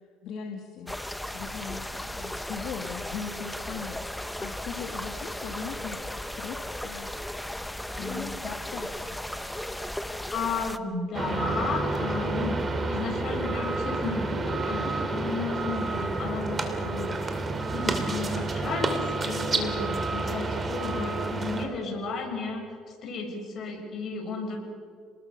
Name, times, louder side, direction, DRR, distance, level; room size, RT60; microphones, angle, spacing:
voice 1, 0.2-0.9 1.3-7.1 8.0-9.2, left 7 dB, 65° left, 2 dB, 2.4 m, -39 dB
sound 1, 0.9-10.8, left 1 dB, 5° left, 0.9 m, -36 dB
voice 2, 10.3-12.6 12.9-17.4 17.7-22.6 23.0-24.6, left 4 dB, 45° left, 2 dB, 6.6 m, -33 dB
sound 2, 11.1-21.7, right 3 dB, 25° right, 2.8 m, -29 dB
29.5 x 20.5 x 6.9 m, 2.3 s
cardioid pair, 120°, 0 cm